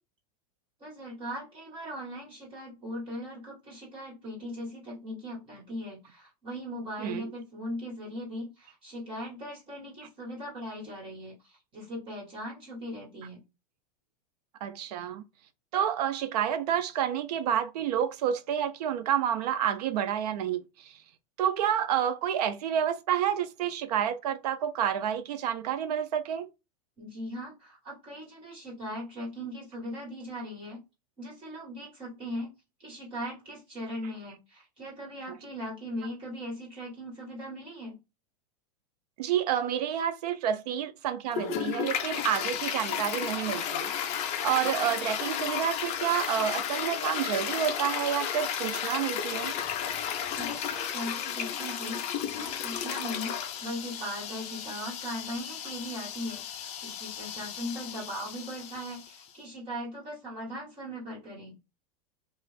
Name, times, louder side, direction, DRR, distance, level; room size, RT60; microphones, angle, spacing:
voice 1, 0.8-13.4 27.0-30.8 31.2-32.5 32.8-38.0 50.4-56.4 56.8-61.6, equal, 25° right, 1.6 m, -39 dB
voice 2, 14.6-15.2 15.7-21.0 21.4-26.5 39.2-49.6, right 9 dB, 85° right, 0.5 m, -29 dB
Toilet flush, 41.3-59.2, left 9 dB, 35° left, 0.5 m, -33 dB
2.4 x 2.4 x 3.2 m
supercardioid pair, 150°, 20 cm